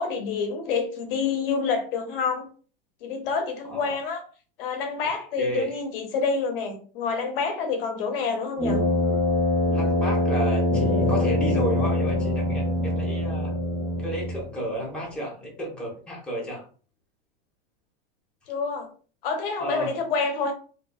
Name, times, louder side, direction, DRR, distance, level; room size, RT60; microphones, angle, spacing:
voice 1, 0.0-2.5 3.0-4.2 4.6-8.8 18.5-18.9 19.2-20.5, left 5 dB, 70° left, 6 dB, 0.8 m, -27 dB
voice 2, 5.4-5.8 9.7-13.5 14.0-16.6 19.6-19.9, right 1 dB, 5° left, -3 dB, 1.0 m, -32 dB
Brass instrument, 8.6-14.5, left 1 dB, 30° right, 1.0 m, -24 dB
sound 1, 10.7-15.8, left 5 dB, 45° left, 0.4 m, -33 dB
2.6 x 2.6 x 2.3 m, 0.40 s
supercardioid pair, 125°, 29 cm